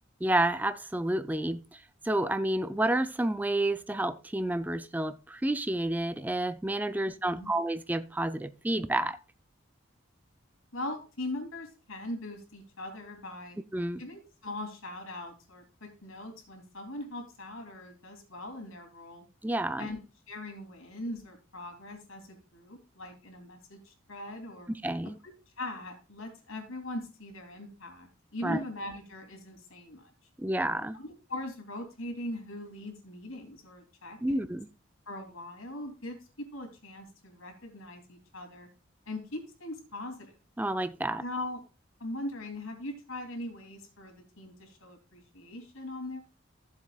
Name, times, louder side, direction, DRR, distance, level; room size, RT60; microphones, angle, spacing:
voice 1, 0.2-9.2 13.7-14.0 19.4-19.9 24.8-25.2 28.4-28.6 30.4-31.0 34.2-34.7 40.6-41.2, right 1 dB, 10° right, 0.4 m, -30 dB
voice 2, 10.7-13.6 14.0-19.3 19.8-20.0 20.3-24.7 25.6-30.1 30.9-34.4 35.1-36.2 36.5-38.7 39.1-40.3 41.2-41.6 42.0-46.2, left 1 dB, 85° left, 2.9 m, -41 dB
15.0 x 7.3 x 2.3 m
head